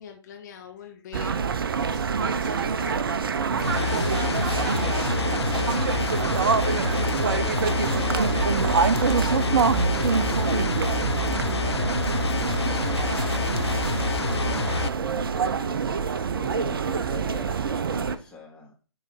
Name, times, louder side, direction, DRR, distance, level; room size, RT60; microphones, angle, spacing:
voice 1, 0.0-1.5 1.8-6.0, left 9 dB, 40° left, 3 dB, 1.2 m, -45 dB
sound 1, 1.1-18.2, right 6 dB, 55° right, 0.7 m, -25 dB
sound 2, 3.6-14.9, left 6 dB, 70° left, 0.5 m, -28 dB
voice 2, 7.6-8.8 9.0-18.7, left 4 dB, 5° left, -4 dB, 2.5 m, -44 dB
11.5 x 3.9 x 4.7 m, 0.36 s
figure-of-eight pair, 130°, 14 cm